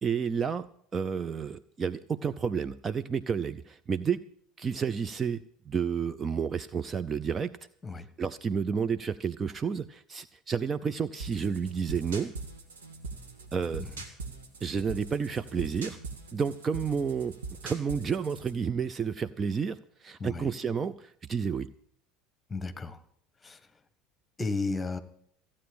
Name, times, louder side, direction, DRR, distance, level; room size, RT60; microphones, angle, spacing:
voice 1, 0.0-0.7 0.9-4.2 4.6-7.5 8.2-12.3 13.5-13.8 14.6-16.0 16.3-17.4 17.6-21.7, right 6 dB, 25° right, 14 dB, 0.5 m, -31 dB
sound 1, 11.2-18.6, right 3 dB, 75° right, 2.0 m, -42 dB
voice 2, 22.5-23.0 23.4-23.6 24.4-25.0, left 3 dB, 15° left, 12 dB, 1.4 m, -33 dB
15.0 x 8.6 x 8.8 m, 0.65 s
figure-of-eight pair, 70°, 0 cm